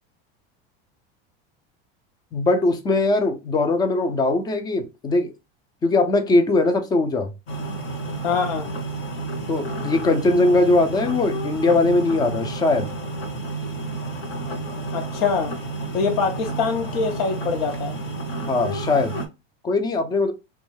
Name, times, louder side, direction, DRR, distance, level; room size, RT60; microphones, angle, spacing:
voice 1, 2.3-5.3 5.8-7.3 9.5-12.9 18.5-19.1 19.6-20.3, left 2 dB, 15° left, 0.3 m, -20 dB
sound 1, 7.5-19.3, right 2 dB, 40° left, 0.8 m, -30 dB
voice 2, 8.2-8.7 14.9-15.5 15.9-17.9, left 5 dB, 80° left, 0.8 m, -24 dB
2.4 x 2.2 x 3.1 m
supercardioid pair, 135°, 29 cm